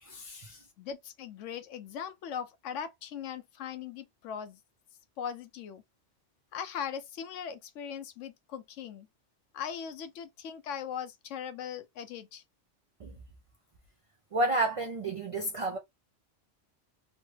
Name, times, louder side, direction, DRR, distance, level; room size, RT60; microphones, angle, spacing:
voice 1, 0.0-0.6 13.0-13.1 14.3-15.8, right 2 dB, 55° right, 0.3 m, -31 dB
voice 2, 0.8-4.6 5.2-5.8 6.5-9.1 9.5-12.4, left 8 dB, 85° left, 1.0 m, -39 dB
3.1 x 2.1 x 3.1 m
omnidirectional pair, 1.2 m